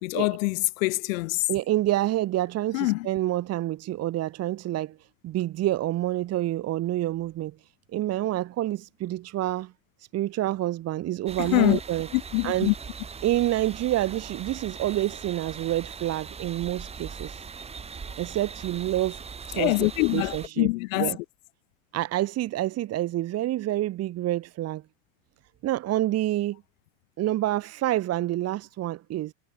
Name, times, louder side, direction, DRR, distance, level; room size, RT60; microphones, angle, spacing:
voice 1, 0.0-1.5 2.7-3.1 11.4-11.8 12.1-12.7 19.5-21.2, left 23 dB, 75° left, 2.4 m, -25 dB
voice 2, 1.5-5.0 5.2-7.5 7.9-9.7 10.1-12.1 12.4-12.7 13.2-17.4 18.2-19.2 19.5-19.7 20.1-20.7 21.0-21.2 21.9-24.8 25.6-26.6 27.2-29.3, right 14 dB, 35° right, 1.7 m, -27 dB
sound 1, 11.3-20.5, right 6 dB, 15° right, 1.3 m, -40 dB
supercardioid pair, 135°, 40 cm